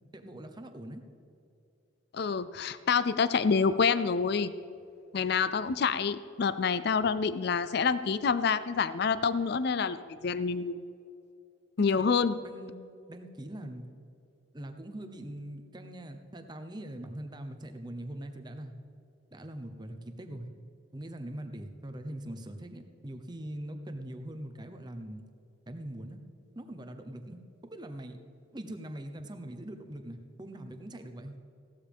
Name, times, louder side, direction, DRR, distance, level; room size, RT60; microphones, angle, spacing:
voice 1, 0.1-1.0 11.9-12.0 12.4-12.8 13.1-13.9 14.5-18.7 19.3-20.5 20.9-25.2 25.7-26.2 26.5-28.2 28.5-31.3, right 1 dB, 20° right, 6 dB, 0.8 m, -42 dB
voice 2, 2.1-4.5 5.1-10.8 11.8-12.3, left 5 dB, 50° left, 15 dB, 0.4 m, -27 dB
16.0 x 12.5 x 3.5 m, 2.6 s
head